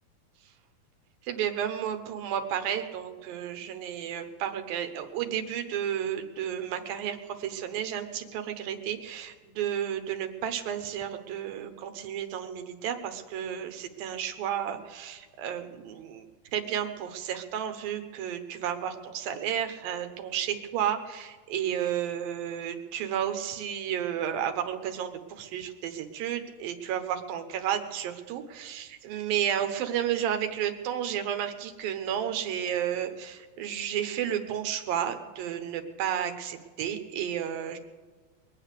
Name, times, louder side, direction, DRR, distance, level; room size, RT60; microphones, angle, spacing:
voice 1, 1.2-16.3 16.5-37.8, right 9 dB, 75° right, 7 dB, 2.7 m, -32 dB
22.5 x 8.7 x 6.6 m, 1.4 s
omnidirectional pair, 4.4 m